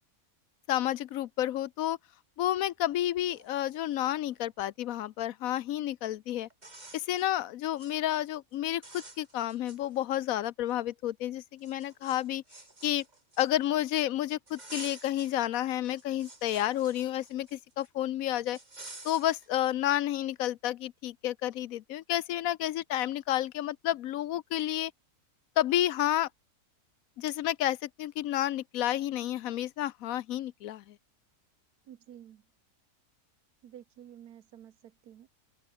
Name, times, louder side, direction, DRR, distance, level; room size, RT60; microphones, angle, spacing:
voice 1, 0.7-2.0 2.4-6.5 6.9-12.4 12.8-13.0 13.4-18.6 19.0-24.9 25.6-26.3 27.2-31.0, left 13 dB, 70° left, 1.0 m, -30 dB
sound 1, 2.9-3.0 3.3-4.4 5.9-6.0 6.5-7.3 7.6-8.0 8.3-8.5 8.8-10.2 10.7-10.8 11.6-13.8 14.5-15.4 15.7-17.9 18.5-19.5, right 2 dB, 25° right, 2.9 m, -50 dB
voice 2, 31.9-32.4 33.6-35.3, right 10 dB, 85° right, 1.5 m, -51 dB
omnidirectional pair, 1.6 m